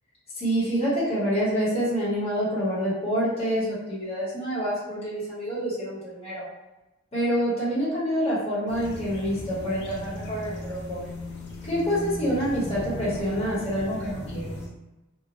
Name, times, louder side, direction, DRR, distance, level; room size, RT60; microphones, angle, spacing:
voice 1, 0.3-6.4 7.1-11.0 11.7-14.6, equal, 30° left, -10 dB, 1.1 m, -27 dB
sound 1, 8.7-14.7, left 1 dB, 60° left, 0.5 m, -36 dB
2.9 x 2.3 x 2.5 m, 1.0 s
head